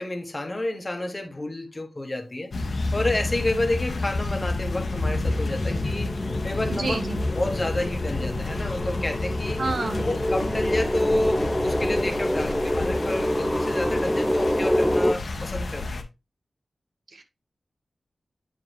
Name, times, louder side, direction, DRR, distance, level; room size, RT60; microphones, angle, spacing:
voice 1, 0.0-6.1 6.4-7.0 7.3-9.6 10.0-16.1, left 1 dB, 30° left, 1.3 m, -30 dB
sound 1, 2.5-16.0, left 2 dB, 65° left, 1.0 m, -30 dB
sound 2, 4.3-15.1, equal, 5° left, 0.4 m, -27 dB
voice 2, 6.7-7.2 9.6-10.1 17.1-17.2, right 3 dB, 65° right, 1.3 m, -29 dB
8.6 x 4.8 x 3.3 m
wide cardioid pair, 100°, 0 cm